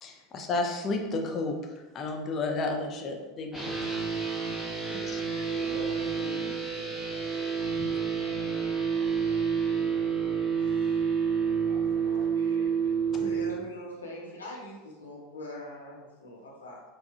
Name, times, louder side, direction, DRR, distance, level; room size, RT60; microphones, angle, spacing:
voice 1, 0.0-4.0 4.8-5.2 7.7-7.9, left 3 dB, 35° left, 3 dB, 0.6 m, -32 dB
sound 1, 3.5-13.5, right 6 dB, 5° left, 1.1 m, -29 dB
voice 2, 4.9-6.5 8.3-8.4 10.0-10.3 10.6-11.0 13.1-16.8, left 1 dB, 80° left, -4 dB, 1.0 m, -43 dB
voice 3, 5.5-8.4 8.8-9.5 11.7-13.0, right 3 dB, 65° right, -1 dB, 0.4 m, -49 dB
4.7 x 2.3 x 2.6 m, 1.2 s
figure-of-eight pair, 75°, 0 cm